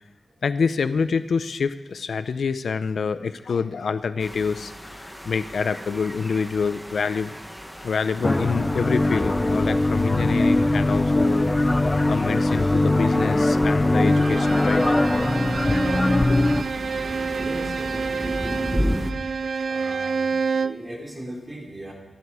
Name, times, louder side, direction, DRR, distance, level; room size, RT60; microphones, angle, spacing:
voice 1, 0.4-7.4 7.8-11.5 12.1-14.8 16.3-16.6, left 5 dB, 70° left, 12 dB, 0.5 m, -26 dB
sound 1, 4.2-19.1, equal, ahead, 0.9 m, -35 dB
sound 2, 8.2-16.6, left 2 dB, 15° left, 0.5 m, -21 dB
Bowed string instrument, 14.0-20.9, right 5 dB, 60° right, 0.5 m, -28 dB
voice 2, 17.4-19.1 19.7-21.9, right 1 dB, 20° right, -1 dB, 3.8 m, -39 dB
25.5 x 11.0 x 4.8 m, 1.2 s
wide cardioid pair, 170°, 0 cm